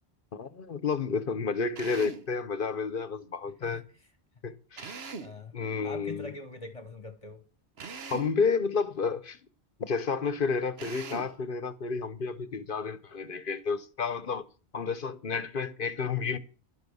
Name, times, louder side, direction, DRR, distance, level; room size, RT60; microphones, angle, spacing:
voice 1, 0.3-3.8 4.4-5.0 5.5-6.3 8.1-9.4 9.8-14.5 14.7-16.4, left 5 dB, 55° left, 1.0 m, -31 dB
Drill, 1.8-2.3 4.8-5.4 7.8-8.4 10.8-11.4, right 4 dB, 70° right, 1.3 m, -41 dB
voice 2, 3.6-4.1 4.9-7.4, left 2 dB, 30° left, 1.2 m, -44 dB
11.0 x 10.5 x 6.3 m
omnidirectional pair, 1.1 m